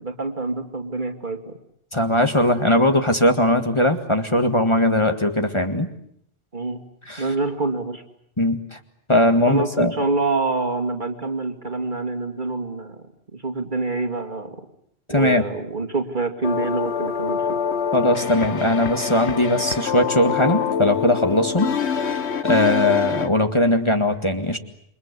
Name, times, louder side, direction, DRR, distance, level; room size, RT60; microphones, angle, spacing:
voice 1, 0.0-1.6 6.5-6.8 7.2-8.0 9.5-14.6 15.1-17.6, right 3 dB, 45° right, 6 dB, 2.5 m, -26 dB
voice 2, 1.9-5.9 7.1-7.3 8.4-8.8 9.1-9.9 15.1-15.4 17.9-24.6, left 1 dB, 25° left, 6 dB, 1.9 m, -20 dB
sound 1, 16.4-23.3, left 7 dB, 70° left, 1.6 m, -25 dB
28.0 x 24.0 x 8.2 m, 0.72 s
omnidirectional pair, 1.2 m